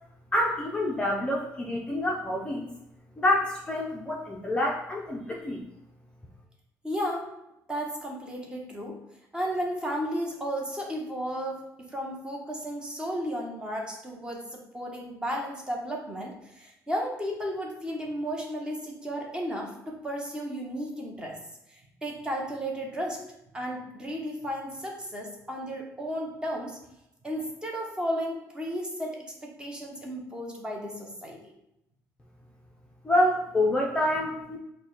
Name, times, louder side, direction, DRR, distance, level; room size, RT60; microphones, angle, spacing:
voice 1, 0.3-2.7 3.2-5.6 33.0-34.6, left 1 dB, 15° left, -2 dB, 0.5 m, -27 dB
voice 2, 6.8-7.3 7.7-9.0 9.3-21.4 21.7-23.2 23.5-26.8 27.2-31.4, equal, 15° right, -1 dB, 0.9 m, -34 dB
4.7 x 2.2 x 3.9 m, 0.86 s
cardioid pair, 125°, 7 cm